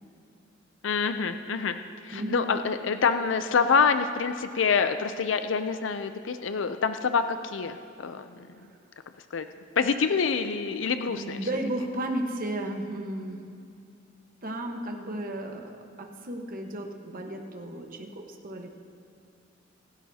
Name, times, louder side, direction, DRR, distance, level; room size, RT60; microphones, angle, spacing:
voice 1, 0.8-1.8 2.0-8.5 9.3-9.5 9.8-11.4, left 5 dB, 75° left, 9 dB, 0.5 m, -26 dB
voice 2, 2.1-2.6 11.1-13.4 14.4-18.7, right 1 dB, 45° right, 3 dB, 1.2 m, -34 dB
26.0 x 12.0 x 2.8 m, 2.4 s
head